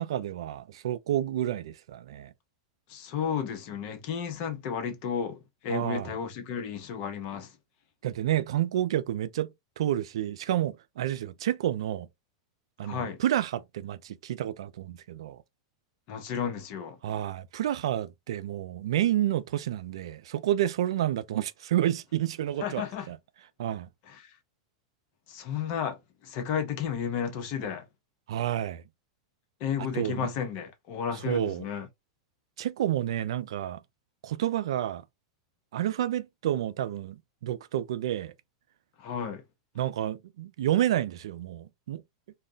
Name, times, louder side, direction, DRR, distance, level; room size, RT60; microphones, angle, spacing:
voice 1, 0.0-2.3 5.7-6.1 8.0-9.5 9.8-12.1 12.8-15.4 17.0-23.2 23.6-23.9 28.3-28.8 30.0-30.3 31.3-31.6 32.6-33.8 34.2-35.0 35.7-38.3 39.8-42.0, right 12 dB, 80° right, 0.3 m, -29 dB
voice 2, 2.9-7.6 12.8-13.2 16.1-17.0 22.6-23.1 24.0-24.4 25.3-27.9 29.6-31.9 39.0-39.4, left 7 dB, 50° left, 0.7 m, -33 dB
2.2 x 2.1 x 3.6 m
hypercardioid pair, 120°, 3 cm